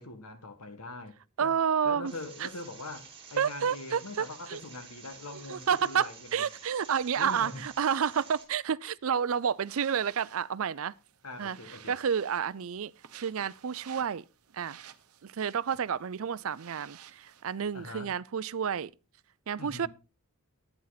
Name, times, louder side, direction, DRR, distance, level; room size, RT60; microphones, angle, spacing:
voice 1, 0.0-1.6 1.8-6.5 7.2-7.7 11.2-12.0 17.7-18.1 19.6-19.9, left 2 dB, 85° left, 1.7 m, -42 dB
voice 2, 1.4-2.1 3.4-4.6 5.5-10.9 11.4-11.6 11.9-12.9 13.2-14.2 14.5-14.8 15.2-18.9 19.5-19.9, right 7 dB, 65° right, 0.5 m, -30 dB
sound 1, 2.0-8.4, right 5 dB, 25° right, 2.6 m, -51 dB
sound 2, 9.1-18.0, right 9 dB, 85° right, 0.9 m, -54 dB
11.5 x 8.9 x 4.1 m
head